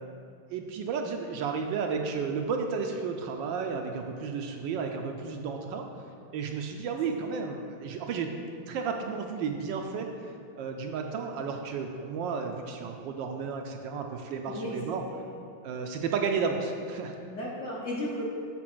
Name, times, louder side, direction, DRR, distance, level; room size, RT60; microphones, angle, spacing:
voice 1, 0.5-5.9 6.3-8.3 8.7-15.0 15.6-17.2, right 5 dB, 75° right, 4 dB, 1.2 m, -32 dB
voice 2, 14.5-14.8 15.1-15.3 17.3-18.3, equal, 50° left, -5 dB, 1.0 m, -35 dB
7.5 x 4.2 x 6.0 m, 2.4 s
omnidirectional pair, 2.2 m